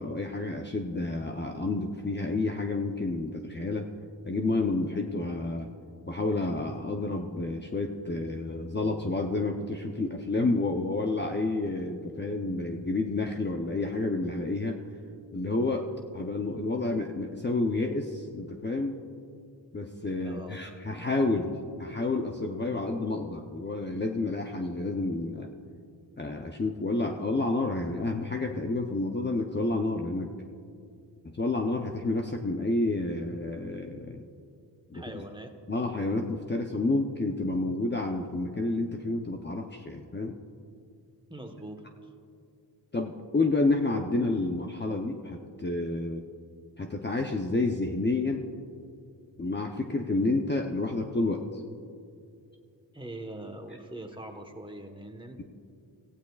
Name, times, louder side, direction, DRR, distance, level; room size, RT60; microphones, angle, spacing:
voice 1, 0.0-3.9 4.3-5.7 6.1-14.8 15.3-19.0 19.7-25.5 26.2-30.3 31.2-34.2 34.9-35.2 35.7-40.4 42.9-46.2 46.8-48.5 49.4-51.6, left 2 dB, 25° left, 2 dB, 0.7 m, -30 dB
voice 2, 20.2-20.6 34.9-35.5 41.3-42.1 52.9-55.4, right 1 dB, 10° right, 5 dB, 1.2 m, -42 dB
25.0 x 15.5 x 2.4 m, 2.4 s
wide cardioid pair, 100°, 46 cm